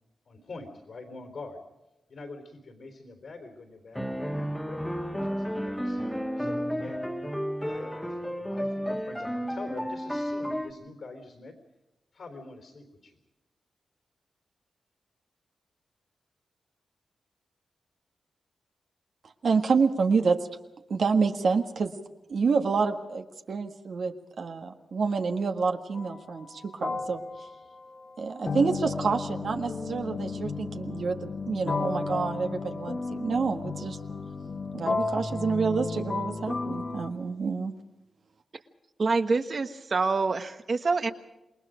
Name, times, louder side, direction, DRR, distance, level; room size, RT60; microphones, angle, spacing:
voice 1, 0.3-1.6 2.1-4.9 5.2-6.0 6.4-7.1 7.6-11.6 12.1-13.2, left 3 dB, 65° left, 5 dB, 3.8 m, -45 dB
sound 1, 4.0-10.7, equal, 5° left, 1.7 m, -32 dB
voice 2, 19.4-20.4 20.9-21.9 22.3-27.2 28.2-34.0 34.7-37.7, right 5 dB, 65° right, 5 dB, 1.6 m, -28 dB
sound 2, 25.9-26.2 26.8-37.1, left 3 dB, 45° left, 1.8 m, -33 dB
voice 3, 39.0-41.1, right 4 dB, 45° right, 9 dB, 1.4 m, -26 dB
27.5 x 21.0 x 5.1 m, 1.0 s
wide cardioid pair, 105°, 0 cm